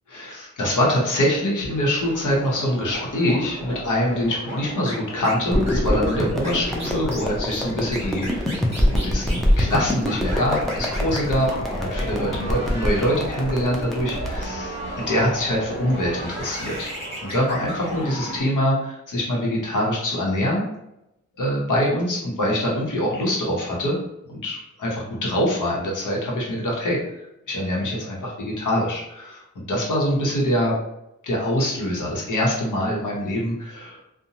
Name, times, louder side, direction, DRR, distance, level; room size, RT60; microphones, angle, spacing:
voice 1, 0.1-16.9 17.3-20.6 21.4-24.0 24.3-30.7 31.2-34.0, equal, 80° left, -3 dB, 0.9 m, -24 dB
sound 1, 2.0-18.4, right 1 dB, 20° right, 1.1 m, -35 dB
sound 2, 5.5-14.4, equal, ahead, 0.5 m, -25 dB
2.8 x 2.1 x 2.7 m, 0.87 s
wide cardioid pair, 110°, 31 cm